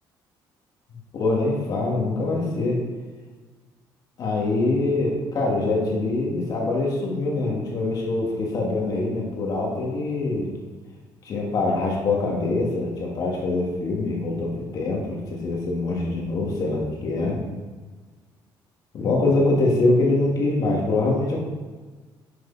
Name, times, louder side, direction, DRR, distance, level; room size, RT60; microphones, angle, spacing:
voice 1, 1.1-2.8 4.2-10.5 11.2-17.4 18.9-21.4, left 2 dB, 45° left, -2 dB, 2.5 m, -24 dB
11.0 x 7.6 x 4.3 m, 1.4 s
cardioid pair, 160°, 9 cm